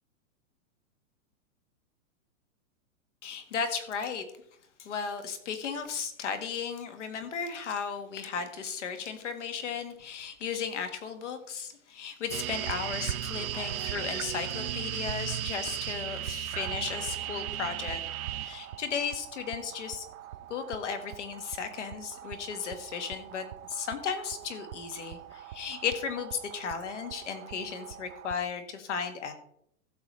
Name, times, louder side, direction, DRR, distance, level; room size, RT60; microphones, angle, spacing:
voice 1, 3.2-4.2 4.8-18.0 18.4-20.0 20.5-29.3, left 6 dB, 60° left, 8 dB, 1.6 m, -35 dB
sound 1, 12.3-28.4, right 12 dB, 85° right, 0.7 m, -38 dB
15.5 x 6.7 x 3.2 m, 0.70 s
hypercardioid pair, 180°, 41 cm